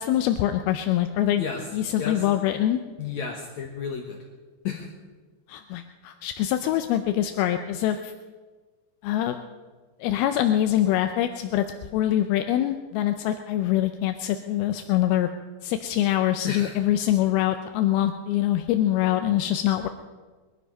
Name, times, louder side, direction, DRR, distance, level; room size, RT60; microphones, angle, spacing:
voice 1, 0.0-1.4 1.7-2.8 5.5-8.1 9.0-9.4 10.0-11.7 11.9-15.3 15.6-19.9, left 12 dB, 80° left, 7 dB, 2.5 m, -24 dB
voice 2, 3.0-4.2 4.6-4.9 16.4-16.7, left 6 dB, 65° left, 2 dB, 1.9 m, -32 dB
21.5 x 12.0 x 5.4 m, 1.4 s
omnidirectional pair, 4.4 m